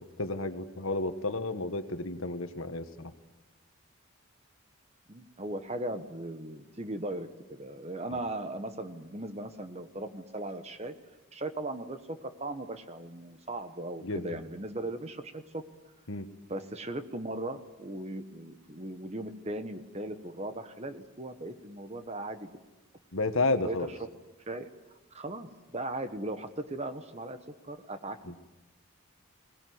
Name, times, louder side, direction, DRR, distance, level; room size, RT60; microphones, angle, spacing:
voice 1, 0.0-3.1 14.0-14.4 16.1-16.3 23.1-23.9 28.3-28.4, left 2 dB, 70° left, 9 dB, 1.5 m, -32 dB
voice 2, 5.1-10.9 11.3-15.6 16.5-22.5 23.6-23.8 24.5-24.7 25.1-25.5 25.7-27.4 27.6-28.2, right 1 dB, 30° right, 9 dB, 1.3 m, -38 dB
21.5 x 19.0 x 9.5 m, 1.1 s
head